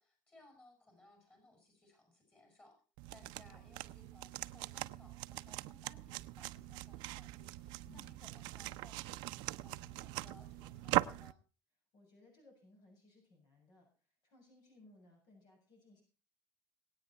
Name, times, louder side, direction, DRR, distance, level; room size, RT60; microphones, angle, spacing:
voice 1, 0.0-2.8 3.1-11.4, left 2 dB, 25° left, 3 dB, 6.0 m, -63 dB
sound 1, 3.0-11.3, right 19 dB, 75° right, 0.7 m, -41 dB
voice 2, 3.2-3.6 7.9-8.2 11.9-16.0, left 2 dB, 65° left, 1 dB, 7.3 m, -63 dB
21.5 x 9.0 x 4.3 m, 0.37 s
cardioid pair, 125°, 8 cm